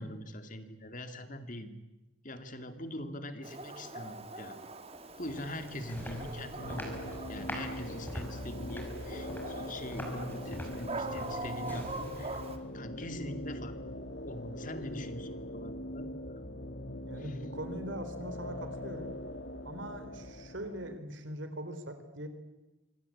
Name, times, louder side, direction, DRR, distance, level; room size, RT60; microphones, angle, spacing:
voice 1, 0.0-1.7 2.2-4.6 5.2-7.0 7.3-12.4 12.7-13.9 14.2-16.1 17.2-17.4, left 1 dB, 40° left, 8 dB, 2.3 m, -43 dB
Dog, 3.4-12.6, right 2 dB, 30° right, 1.7 m, -43 dB
sound 1, 4.9-12.8, left 1 dB, 10° left, 5.3 m, -45 dB
sound 2, 6.6-21.0, left 1 dB, 55° left, 1.8 m, -42 dB
voice 2, 17.1-19.2 19.6-22.3, right 1 dB, 65° right, 9 dB, 3.8 m, -41 dB
25.5 x 25.0 x 8.7 m, 1.1 s
head